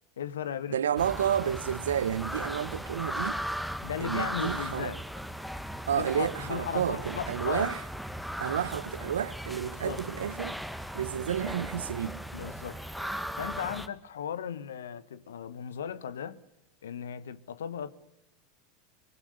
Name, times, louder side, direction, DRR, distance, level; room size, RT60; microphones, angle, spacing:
voice 1, 0.2-0.8 3.8-5.0 5.9-7.7 9.6-10.0 12.3-12.8 13.4-16.4 16.8-17.9, left 8 dB, 75° left, 1.1 m, -36 dB
voice 2, 0.7-3.4 4.0-4.9 5.9-7.8 8.4-10.6 10.9-12.2, right 9 dB, 80° right, 0.8 m, -31 dB
sound 1, 1.0-13.9, equal, ahead, 1.6 m, -37 dB
24.0 x 20.0 x 6.6 m
hypercardioid pair, 85°, 0 cm